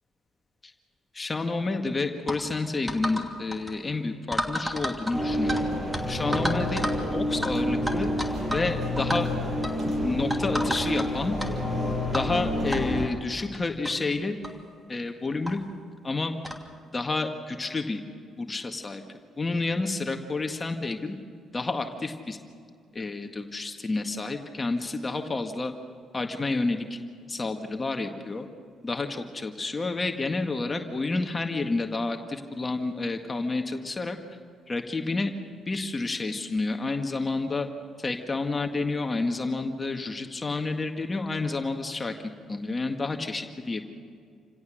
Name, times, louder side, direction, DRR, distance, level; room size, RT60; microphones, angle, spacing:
voice 1, 1.1-5.7 6.1-8.1 8.5-9.3 10.0-11.4 12.1-14.4 14.9-15.6 16.0-16.4 16.9-18.0 18.4-19.0 19.4-21.2 21.5-22.4 22.9-25.7 26.1-27.0 27.3-28.5 28.8-34.2 34.7-35.3 35.7-37.7 38.0-42.1 42.5-43.8, left 3 dB, 30° left, 5 dB, 1.8 m, -29 dB
sound 1, 2.3-2.4 2.9-3.3 3.5-3.7 4.3-5.6 5.9-6.0 6.3-7.0 7.4-7.5 7.9-8.7 9.0-9.2 9.6-9.8 10.3-11.1 11.4-11.5 12.1-12.3 12.7-12.8 13.5-13.6 13.8-13.9 14.4-14.6 15.5-15.6 16.4-16.6, equal, 10° right, 2.7 m, -31 dB
sound 2, 5.1-13.1, left 1 dB, 35° right, 6.1 m, -28 dB
28.5 x 17.0 x 6.5 m, 2.2 s
supercardioid pair, 55°, 0 cm